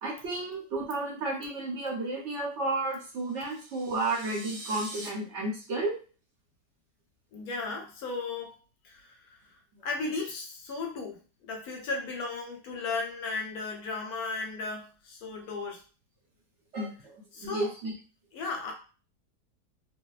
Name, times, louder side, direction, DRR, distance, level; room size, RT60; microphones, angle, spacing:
voice 1, 0.0-6.0 16.7-18.0, right 2 dB, 55° right, -2 dB, 0.9 m, -32 dB
sound 1, 3.2-5.1, right 2 dB, 80° right, 1.3 m, -44 dB
voice 2, 7.3-8.6 8.8-9.2 9.8-15.8 17.3-17.7 18.3-18.7, left 3 dB, 70° left, 2 dB, 1.0 m, -35 dB
2.6 x 2.1 x 2.3 m, 0.36 s
omnidirectional pair, 1.7 m